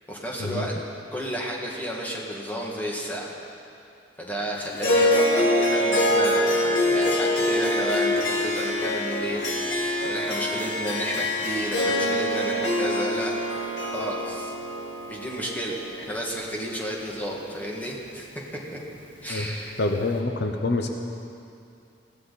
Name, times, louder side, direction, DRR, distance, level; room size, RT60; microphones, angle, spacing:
voice 1, 0.1-0.7 1.1-3.3 4.2-13.3 13.9-14.5 15.1-18.3 18.7-18.8 19.2-19.8, equal, 10° left, -3 dB, 2.1 m, -32 dB
Harp, 4.8-17.3, left 1 dB, 80° left, 1.9 m, -25 dB
voice 2, 19.8-20.9, left 2 dB, 60° left, 4 dB, 0.9 m, -26 dB
20.5 x 15.5 x 4.2 m, 2.6 s
head